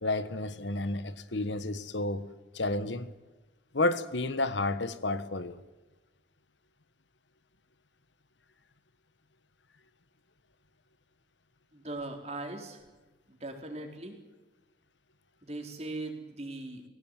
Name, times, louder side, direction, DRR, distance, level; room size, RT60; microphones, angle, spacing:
voice 1, 0.0-3.1 3.7-5.6, left 2 dB, 85° left, 1.4 m, -31 dB
voice 2, 11.7-12.8 13.3-14.2 15.4-16.9, right 2 dB, 35° right, 4.1 m, -39 dB
22.5 x 17.0 x 9.2 m
head